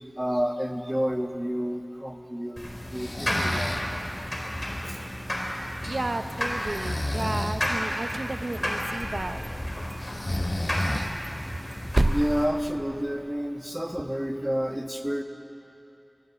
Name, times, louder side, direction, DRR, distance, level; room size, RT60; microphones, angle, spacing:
voice 1, 0.2-4.2 12.1-15.2, equal, 15° right, 4 dB, 1.5 m, -30 dB
sound 1, 2.6-12.4, equal, 35° left, 4.2 m, -32 dB
Breathing, 3.0-3.9 6.6-7.6 10.0-11.4, left 1 dB, 50° left, 1.2 m, -31 dB
voice 2, 5.8-9.4, right 2 dB, 90° right, 8 dB, 0.7 m, -33 dB
sound 2, 6.6-7.7 8.0-9.2 9.4-9.5 9.9-10.1 10.3-10.4 10.8-13.4, right 1 dB, 45° right, 0.6 m, -31 dB
23.5 x 15.5 x 8.3 m, 2.8 s
wide cardioid pair, 40°, 0 cm